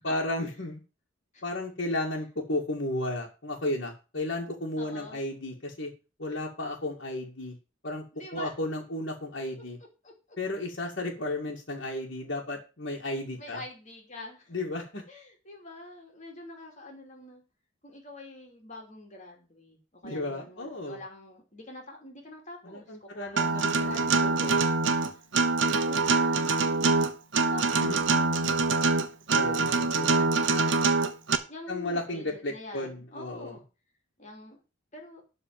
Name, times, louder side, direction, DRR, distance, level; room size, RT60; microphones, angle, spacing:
voice 1, 0.0-0.8 1.4-5.9 6.2-7.6 7.8-8.0 8.3-9.8 10.4-13.6 14.5-15.0 20.0-21.0 22.6-24.6 27.8-28.0 29.3-30.1 31.7-33.6, left 1 dB, 60° left, -4 dB, 2.1 m, -34 dB
voice 2, 4.8-5.2 8.1-8.6 10.0-10.4 13.4-14.6 15.1-17.4 17.8-24.6 24.9-25.2 25.8-26.9 27.4-28.7 30.4-30.7 31.5-33.6 34.2-34.6 34.9-35.2, left 2 dB, 35° left, 1 dB, 2.9 m, -45 dB
Acoustic guitar, 23.4-31.3, right 3 dB, 65° right, 1.1 m, -24 dB
12.5 x 4.2 x 7.6 m, 0.32 s
head